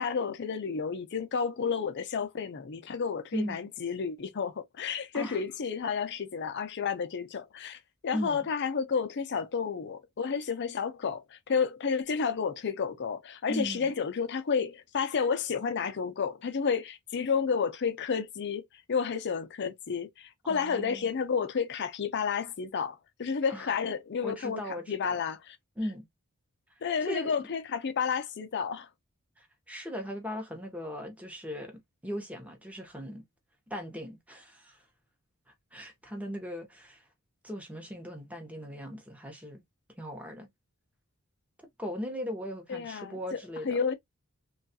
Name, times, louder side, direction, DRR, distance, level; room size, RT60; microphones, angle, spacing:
voice 1, 0.0-18.6 18.9-24.6 24.9-25.6 26.8-28.9 42.7-43.4 43.6-43.9, left 6 dB, 55° left, 0.5 m, -31 dB
voice 2, 3.3-3.7 5.1-5.4 8.1-8.5 13.5-13.9 20.4-21.1 23.5-23.7 24.2-25.2 25.8-26.0 27.1-27.3 29.4-33.2 33.7-34.8 35.7-37.1 37.4-39.6 40.0-40.5 41.8-43.8, equal, 5° right, 0.8 m, -38 dB
3.1 x 2.3 x 2.6 m
head